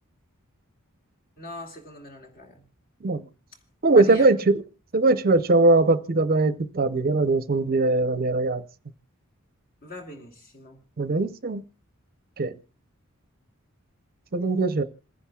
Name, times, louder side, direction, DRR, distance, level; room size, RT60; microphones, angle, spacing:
voice 1, 1.4-2.7 3.9-4.3 9.8-10.8 14.4-14.5, left 1 dB, 45° left, 2.4 m, -41 dB
voice 2, 3.8-4.6 4.9-8.6 11.0-11.6 12.4-12.6 14.3-14.8, right 2 dB, 45° right, 0.6 m, -21 dB
27.5 x 10.0 x 2.3 m
head